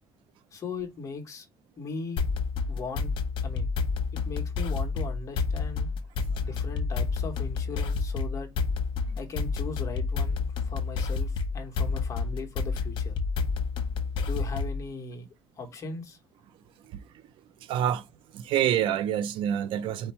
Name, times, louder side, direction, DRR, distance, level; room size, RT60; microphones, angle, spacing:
voice 1, 0.5-1.5 1.8-2.2 2.7-3.1 3.4-3.7 4.1-5.9 6.4-8.5 9.2-13.2 14.3-15.3 15.6-16.2, left 4 dB, 35° left, 1.1 m, -38 dB
sound 1, 2.2-14.8, left 4 dB, 70° left, 1.0 m, -29 dB
voice 2, 17.6-18.1 18.3-20.1, right 10 dB, 75° right, 0.4 m, -27 dB
4.3 x 2.8 x 4.3 m
cardioid pair, 160°, 9 cm